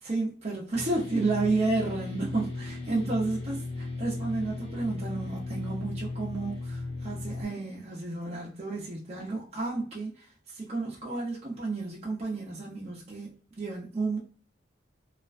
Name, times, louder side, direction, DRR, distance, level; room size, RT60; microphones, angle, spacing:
voice 1, 0.0-13.3 13.6-14.2, right 3 dB, 35° right, -5 dB, 0.6 m, -32 dB
sound 1, 0.7-7.4, left 2 dB, 25° left, 0.7 m, -36 dB
2.4 x 2.1 x 2.4 m, 0.41 s
head